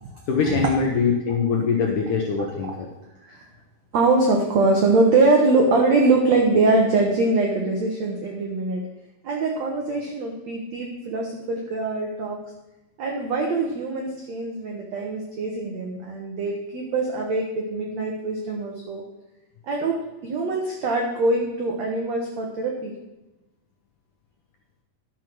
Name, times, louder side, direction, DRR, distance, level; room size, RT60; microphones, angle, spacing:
voice 1, 0.3-2.9, left 5 dB, 75° left, 1 dB, 1.9 m, -23 dB
voice 2, 3.9-8.8 9.2-12.4 13.0-19.0 19.6-22.9, right 3 dB, 85° right, 1 dB, 1.5 m, -23 dB
12.0 x 6.5 x 6.1 m, 0.97 s
omnidirectional pair, 4.9 m